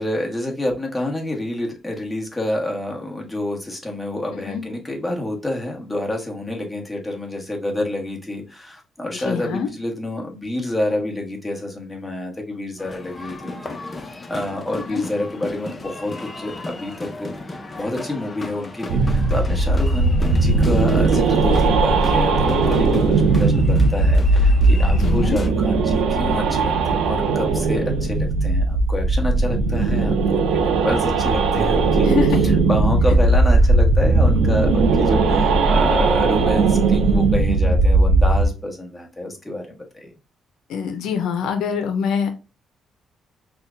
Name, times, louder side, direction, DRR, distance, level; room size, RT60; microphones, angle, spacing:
voice 1, 0.0-32.1 32.4-40.1, left 1 dB, 10° left, 0 dB, 1.2 m, -28 dB
voice 2, 9.1-9.7 14.8-15.0 24.9-25.4 32.0-32.4 40.7-42.3, left 6 dB, 80° left, 7 dB, 0.5 m, -25 dB
sound 1, 12.8-25.5, left 2 dB, 25° left, 0.6 m, -35 dB
sound 2, 18.9-38.4, right 3 dB, 85° right, 0.5 m, -18 dB
5.6 x 2.2 x 2.5 m, 0.30 s
cardioid pair, 90°, 0 cm